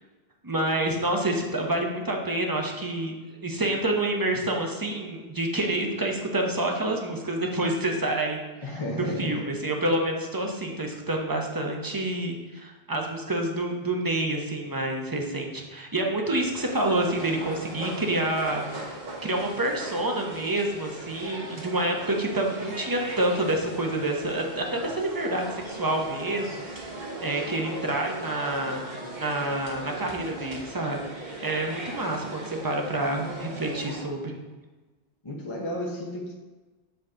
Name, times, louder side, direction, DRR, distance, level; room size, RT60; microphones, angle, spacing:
voice 1, 0.4-18.6 19.2-26.6 27.2-28.8 29.1-31.0 31.2-34.3, right 1 dB, 20° right, 1 dB, 0.9 m, -28 dB
voice 2, 8.6-9.4 35.2-36.3, equal, 30° left, -3 dB, 1.0 m, -32 dB
sound 1, 16.5-34.0, right 2 dB, 45° right, 1.3 m, -39 dB
8.1 x 4.1 x 5.0 m, 1.2 s
omnidirectional pair, 1.1 m